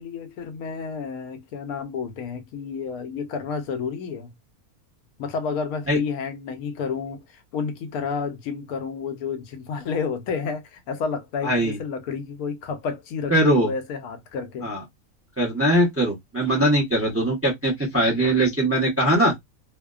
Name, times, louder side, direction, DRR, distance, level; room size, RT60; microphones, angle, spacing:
voice 1, 0.0-4.3 5.2-14.7, left 5 dB, 80° left, 1.1 m, -30 dB
voice 2, 11.4-11.8 13.3-13.7 14.6-14.8 15.4-19.3, right 1 dB, 15° right, 0.5 m, -21 dB
2.7 x 2.1 x 2.3 m
omnidirectional pair, 1.5 m